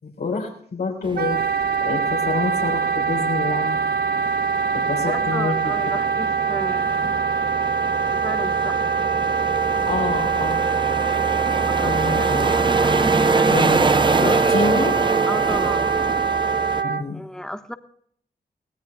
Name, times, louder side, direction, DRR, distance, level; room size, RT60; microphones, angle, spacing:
voice 1, 0.0-1.4 1.8-3.9 4.7-5.8 7.0-7.2 9.9-10.7 11.8-12.5 13.5-13.9 14.2-15.0 16.8-17.2, left 4 dB, 80° left, -2 dB, 4.2 m, -27 dB
sound 1, 1.0-16.8, right 4 dB, 30° right, 0.6 m, -25 dB
Wind instrument woodwind instrument, 1.2-17.0, right 6 dB, 70° right, 0.8 m, -23 dB
voice 2, 5.0-7.2 8.1-8.8 11.5-13.7 14.2-14.6 15.3-15.9 17.1-17.8, equal, 5° left, 8 dB, 1.2 m, -33 dB
23.0 x 17.5 x 2.3 m, 0.63 s
wide cardioid pair, 85°, 17 cm